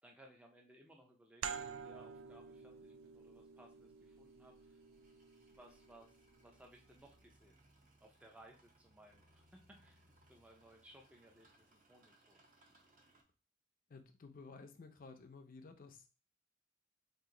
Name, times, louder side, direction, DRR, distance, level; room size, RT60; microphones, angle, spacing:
voice 1, 0.0-4.8 5.5-7.6 8.0-12.7, right 1 dB, 5° right, 1 dB, 0.4 m, -62 dB
sound 1, 1.4-6.7, right 7 dB, 80° right, 0.3 m, -49 dB
sound 2, 2.6-13.2, right 1 dB, 45° right, 0.7 m, -70 dB
voice 2, 13.9-16.1, left 4 dB, 45° left, 7 dB, 0.5 m, -54 dB
2.9 x 2.5 x 3.7 m, 0.33 s
head